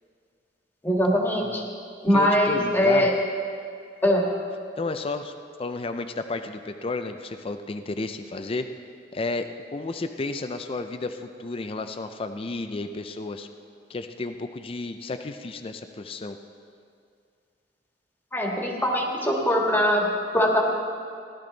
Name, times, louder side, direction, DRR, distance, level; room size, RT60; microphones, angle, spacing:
voice 1, 0.8-1.6 2.0-3.1 4.0-4.3 18.3-20.6, equal, 10° left, -1 dB, 1.6 m, -22 dB
voice 2, 2.1-3.1 4.8-5.3 5.6-8.7 9.1-13.5 13.9-16.4, left 3 dB, 30° left, 7 dB, 0.4 m, -32 dB
16.5 x 12.0 x 4.0 m, 2.3 s
head